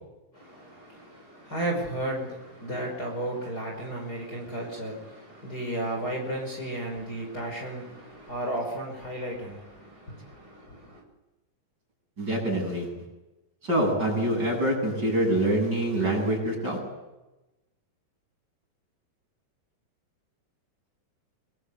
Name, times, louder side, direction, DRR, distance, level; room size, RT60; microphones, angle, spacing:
voice 1, 0.3-11.0, right 1 dB, 25° left, 0 dB, 5.6 m, -34 dB
voice 2, 12.2-13.0 13.6-16.8, right 1 dB, 25° right, 0 dB, 8.6 m, -25 dB
26.0 x 22.5 x 8.3 m, 1.0 s
omnidirectional pair, 4.0 m